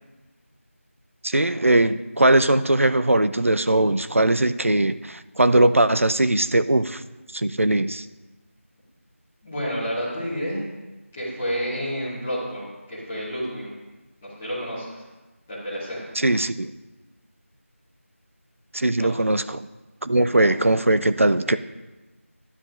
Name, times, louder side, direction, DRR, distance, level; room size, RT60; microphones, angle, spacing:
voice 1, 1.2-7.0 7.3-8.1 16.2-16.7 18.7-19.7 20.0-21.6, right 1 dB, 65° right, 12 dB, 0.4 m, -20 dB
voice 2, 9.4-10.6 11.2-13.7 14.2-15.0 15.5-16.0 19.0-19.1, equal, 5° left, -12 dB, 1.1 m, -30 dB
12.5 x 9.8 x 2.5 m, 1.1 s
figure-of-eight pair, 170°, 8 cm